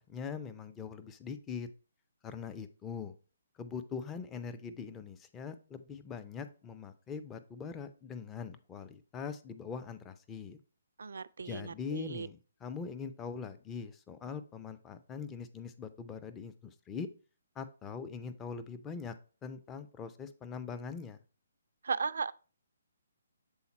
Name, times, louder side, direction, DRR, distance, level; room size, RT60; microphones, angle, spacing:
voice 1, 0.0-1.7 2.2-3.2 3.6-10.6 11.4-17.1 17.6-19.1 19.4-21.2, left 6 dB, 15° left, 0.5 m, -42 dB
voice 2, 11.0-12.3 21.8-22.3, right 5 dB, 65° right, 0.3 m, -36 dB
7.0 x 4.0 x 4.2 m
figure-of-eight pair, 135°, 0 cm